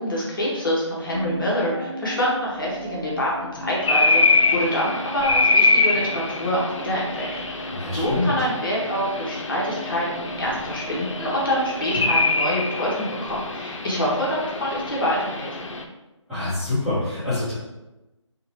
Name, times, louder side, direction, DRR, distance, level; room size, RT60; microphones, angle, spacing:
voice 1, 0.0-15.7, equal, 45° left, -5 dB, 0.9 m, -26 dB
sound 1, 1.1-13.2, equal, 20° left, 0.4 m, -38 dB
sound 2, 3.8-15.8, left 3 dB, 80° left, 0.5 m, -24 dB
voice 2, 7.7-8.3 16.3-17.5, left 2 dB, ahead, -18 dB, 0.9 m, -25 dB
3.8 x 2.1 x 2.8 m, 1.0 s
figure-of-eight pair, 160°, 16 cm